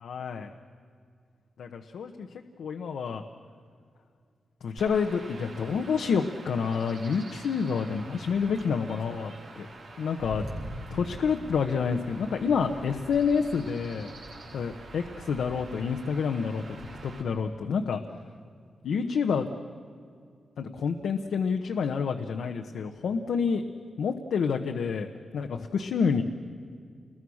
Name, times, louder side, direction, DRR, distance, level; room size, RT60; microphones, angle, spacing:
voice 1, 0.0-0.5 1.6-2.3 2.6-3.2 4.6-9.7 10.0-10.4 10.9-14.1 14.5-16.8 17.0-18.0 18.8-19.5 20.6-23.6 24.0-25.1 25.3-26.2, left 6 dB, 90° left, 4 dB, 1.1 m, -28 dB
Chirp tweet / Wind / Stream, 4.8-17.2, right 2 dB, 75° right, 5.9 m, -44 dB
29.0 x 21.5 x 6.4 m, 2.2 s
wide cardioid pair, 125°, 0 cm